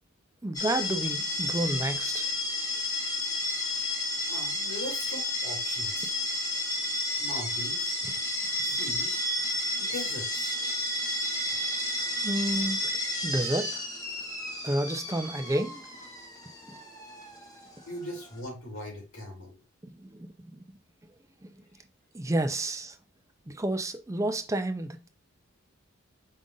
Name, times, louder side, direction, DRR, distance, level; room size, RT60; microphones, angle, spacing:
voice 1, 0.4-2.3 12.2-12.8 13.2-13.8 14.6-15.9 16.7-16.8 19.8-20.7 21.4-21.5 22.1-23.0 23.5-25.1, right 1 dB, 15° right, 0.4 m, -30 dB
sound 1, 0.5-18.4, left 1 dB, 15° left, 0.8 m, -32 dB
voice 2, 4.3-6.1 7.2-8.0 8.6-9.2 9.8-10.6 11.9-12.1 17.9-19.5, left 1 dB, 75° left, 2.4 m, -40 dB
5.3 x 2.5 x 3.8 m
head